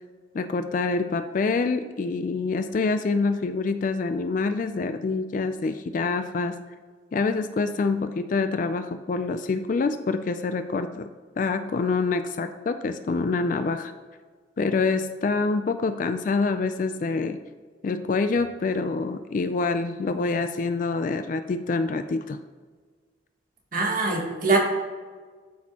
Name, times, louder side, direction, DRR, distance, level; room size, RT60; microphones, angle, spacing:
voice 1, 0.3-6.6 7.1-11.1 11.4-13.9 14.6-17.4 17.8-22.4, left 4 dB, 40° left, 9 dB, 0.3 m, -26 dB
voice 2, 23.7-24.6, right 3 dB, 45° right, 0 dB, 1.3 m, -23 dB
12.5 x 4.3 x 2.9 m, 1.5 s
head